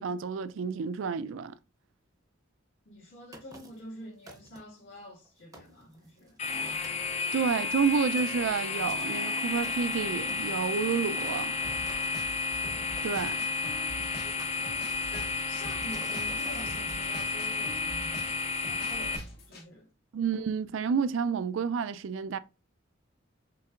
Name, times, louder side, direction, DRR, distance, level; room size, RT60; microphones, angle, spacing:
voice 1, 0.0-1.6 7.3-11.5 13.0-13.4 20.1-22.4, right 6 dB, 85° right, 0.4 m, -29 dB
voice 2, 2.8-6.4 11.8-12.2 13.9-19.9, equal, 70° left, 1.8 m, -47 dB
sound 1, 3.3-3.9 4.3-4.8 5.2-5.3 5.5-6.6 6.8-7.1 7.6-12.1 13.0-13.9 14.4-15.1 15.6-16.7, right 2 dB, 20° right, 0.6 m, -51 dB
sound 2, 6.4-19.2, left 4 dB, 35° left, 0.4 m, -32 dB
sound 3, 11.6-19.6, equal, 55° left, 0.9 m, -45 dB
5.7 x 3.4 x 2.4 m
head